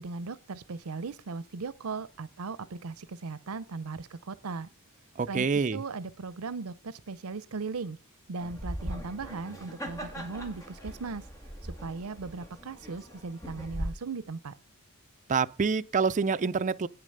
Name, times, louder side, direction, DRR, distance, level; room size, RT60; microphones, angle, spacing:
voice 1, 0.0-4.7 5.3-8.0 8.3-11.2 11.8-14.5, right 4 dB, 85° right, 0.6 m, -38 dB
voice 2, 5.2-5.8 15.3-16.9, right 5 dB, 35° right, 0.5 m, -27 dB
sound 1, 8.4-13.9, equal, 15° left, 2.0 m, -40 dB
9.1 x 6.8 x 6.5 m
head